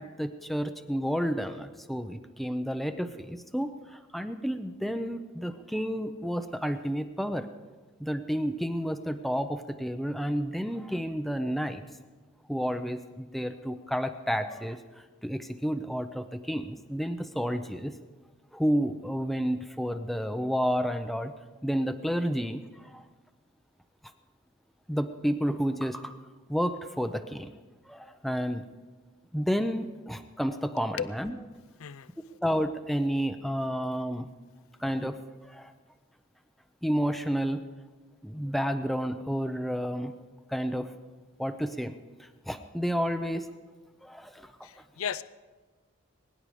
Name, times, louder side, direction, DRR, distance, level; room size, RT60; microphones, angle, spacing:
voice 1, 0.0-7.5 8.0-11.8 12.5-14.8 15.2-17.9 18.5-21.3 21.6-23.0 24.9-26.1 26.5-27.5 27.9-28.6 29.3-31.3 32.4-34.3 34.8-35.7 36.8-37.6 38.2-40.1 40.5-40.9 41.4-41.9 42.2-43.5 44.0-44.5, equal, ahead, 8 dB, 0.6 m, -31 dB
voice 2, 31.8-32.4 44.6-45.2, left 7 dB, 80° left, 16 dB, 0.5 m, -35 dB
22.0 x 10.5 x 4.9 m, 1.3 s
head